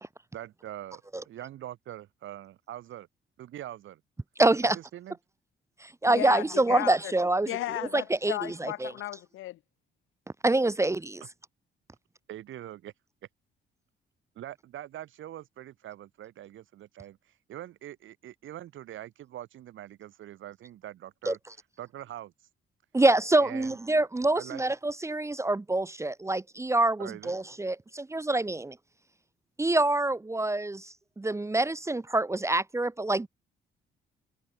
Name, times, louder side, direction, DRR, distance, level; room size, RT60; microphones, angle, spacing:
voice 1, 0.3-3.1 3.4-4.0 4.6-5.2 12.3-12.9 14.3-21.4 21.8-22.3 23.4-23.8 24.3-24.6 27.0-27.3, right 12 dB, 80° right, 4.9 m, -43 dB
voice 2, 4.4-4.8 5.8-7.6 7.9-8.9 10.4-11.2 21.3-21.4 22.9-28.8 29.6-33.3, right 2 dB, 15° right, 0.8 m, -26 dB
voice 3, 6.1-7.1 7.5-9.6, left 15 dB, 90° left, 7.8 m, -35 dB
cardioid pair, 90°, 20 cm